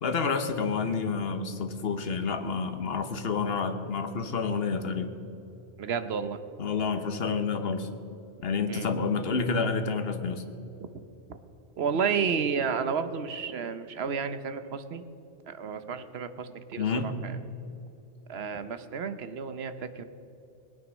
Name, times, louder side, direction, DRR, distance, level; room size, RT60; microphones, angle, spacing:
voice 1, 0.0-5.1 6.6-7.9 8.4-10.4 16.8-17.2, left 5 dB, 55° left, 7 dB, 1.3 m, -29 dB
voice 2, 5.8-6.4 8.7-8.9 11.8-15.0 15.5-17.4 18.3-20.0, right 6 dB, 60° right, 11 dB, 1.1 m, -31 dB
20.5 x 9.2 x 6.3 m, 2.9 s
omnidirectional pair, 1.2 m